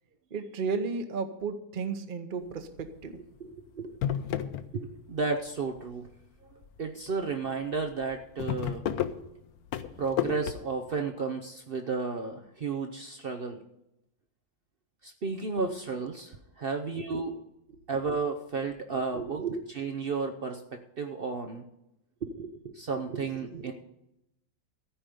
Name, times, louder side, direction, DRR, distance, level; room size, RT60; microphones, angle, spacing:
voice 1, 0.3-3.9 19.1-19.6 22.2-22.8 23.1-23.7, right 5 dB, 40° right, 8 dB, 0.8 m, -35 dB
sound 1, 2.6-3.0 3.4-3.5 3.8-5.2 5.5-6.1 6.6-6.8 7.1-7.2 7.4-7.5 7.9-10.5, left 10 dB, 65° left, 1.0 m, -32 dB
voice 2, 4.7-6.1 6.8-8.9 10.0-13.6 15.0-17.4 17.9-19.4 19.8-21.7 22.8-23.7, right 4 dB, 70° right, 4 dB, 0.5 m, -33 dB
14.5 x 5.2 x 9.3 m, 0.85 s
omnidirectional pair, 2.0 m